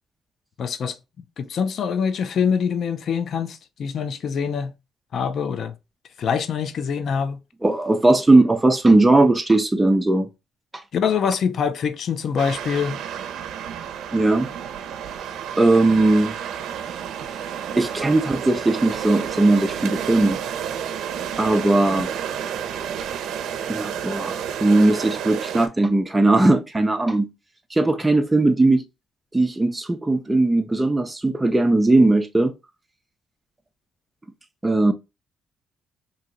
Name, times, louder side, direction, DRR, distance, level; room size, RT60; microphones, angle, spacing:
voice 1, 0.6-1.0 1.4-4.7 5.1-5.7 6.2-7.4 10.9-13.0, left 6 dB, 60° left, 0.5 m, -24 dB
voice 2, 7.6-10.3 10.7-10.8 14.1-14.5 15.6-16.3 17.8-20.4 21.4-22.1 23.7-27.3 27.7-28.8 29.3-32.5 34.6-34.9, right 2 dB, 15° right, 0.4 m, -18 dB
sound 1, 12.4-25.7, right 8 dB, 80° right, 0.5 m, -31 dB
3.0 x 2.7 x 3.7 m
cardioid pair, 90°, 0 cm